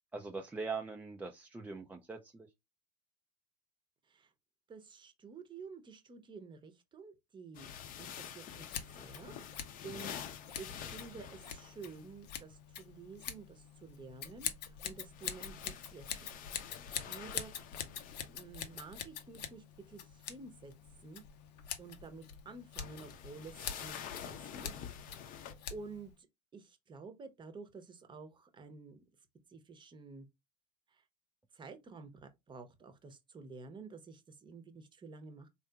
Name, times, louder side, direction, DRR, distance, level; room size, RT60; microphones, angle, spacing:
voice 1, 0.1-2.5, right 4 dB, 10° right, 0.3 m, -42 dB
voice 2, 4.7-7.7 8.0-10.2 10.6-16.4 16.8-17.7 18.3-20.7 21.0-21.2 21.8-24.9 25.7-26.3 26.5-29.0 29.5-30.3 30.9-31.0 31.5-35.5, right 4 dB, 25° right, 0.7 m, -51 dB
sound 1, 7.5-12.1 14.9-19.0 22.6-25.5, left 9 dB, 45° left, 0.6 m, -48 dB
Scissors, 8.6-26.1, left 8 dB, 80° left, 0.6 m, -45 dB
3.6 x 2.8 x 2.3 m
hypercardioid pair, 95°, 20 cm